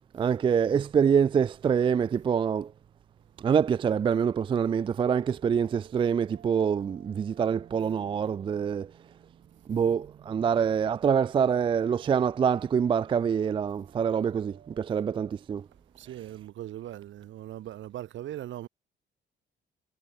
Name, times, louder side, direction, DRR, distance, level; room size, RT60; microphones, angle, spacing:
voice 1, 0.1-2.7 3.4-8.9 9.7-15.7, right 7 dB, 25° right, 0.4 m, -25 dB
sound 1, 0.6-15.3, right 10 dB, 55° right, 6.7 m, -57 dB
voice 2, 15.9-18.7, right 13 dB, 80° right, 7.2 m, -39 dB
cardioid pair, 175°, 19 cm